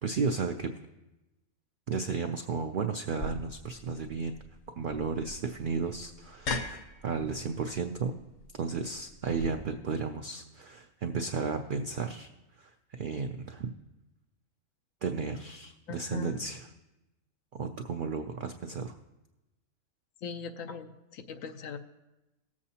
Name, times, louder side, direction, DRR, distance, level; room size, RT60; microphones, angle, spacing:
voice 1, 0.0-0.7 1.9-4.4 4.8-8.2 8.6-12.3 12.6-13.7 15.0-16.6 17.5-19.0, right 5 dB, 75° right, 6 dB, 0.4 m, -33 dB
sound 1, 3.2-9.5, left 2 dB, 45° left, 0.6 m, -40 dB
voice 2, 15.9-16.4 20.2-21.8, left 6 dB, 70° left, 7 dB, 1.0 m, -40 dB
18.5 x 7.4 x 2.8 m, 1.0 s
omnidirectional pair, 1.5 m